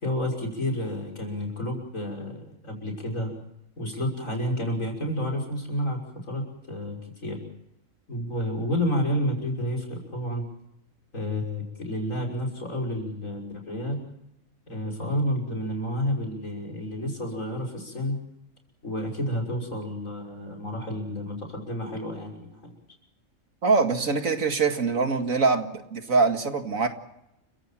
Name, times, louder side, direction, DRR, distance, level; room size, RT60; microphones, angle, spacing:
voice 1, 0.0-3.3 3.8-6.0 6.3-7.4 8.1-10.5 11.1-14.0 14.7-18.2 18.8-22.7, equal, 70° left, 1 dB, 6.4 m, -30 dB
voice 2, 23.6-26.9, right 4 dB, 75° right, 6 dB, 2.4 m, -23 dB
29.5 x 16.5 x 7.5 m, 0.83 s
omnidirectional pair, 1.4 m